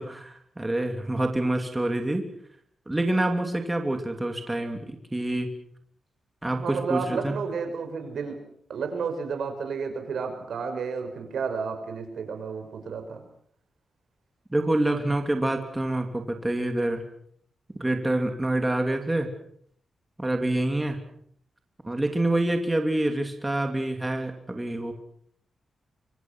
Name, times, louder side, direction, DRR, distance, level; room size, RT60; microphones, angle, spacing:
voice 1, 0.0-2.2 2.9-5.5 6.4-7.4 14.5-17.0 17.8-19.3 20.2-21.0 21.8-24.9, right 1 dB, 15° right, 4 dB, 2.8 m, -27 dB
voice 2, 6.5-8.4 8.7-13.2, right 5 dB, 80° right, 6 dB, 5.9 m, -31 dB
25.0 x 24.5 x 6.2 m, 0.65 s
wide cardioid pair, 120°, 0 cm